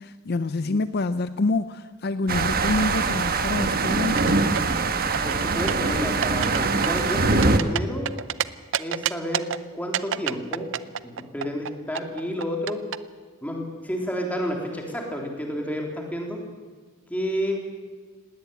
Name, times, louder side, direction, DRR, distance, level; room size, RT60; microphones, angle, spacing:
voice 1, 0.0-4.6, left 2 dB, 50° left, 13 dB, 0.5 m, -27 dB
sound 1, 2.3-7.6, right 3 dB, 45° right, 1.3 m, -23 dB
sound 2, 4.0-4.8 5.1-5.9 6.2-6.6 6.8-8.4 8.7-9.6 9.9-13.0, right 9 dB, 60° right, 0.6 m, -27 dB
voice 2, 5.2-8.1 8.8-9.5 9.7-10.7 11.0-12.8 13.4-16.4 17.1-17.6, equal, 5° left, 1 dB, 3.6 m, -30 dB
19.5 x 17.5 x 9.3 m, 1.5 s
head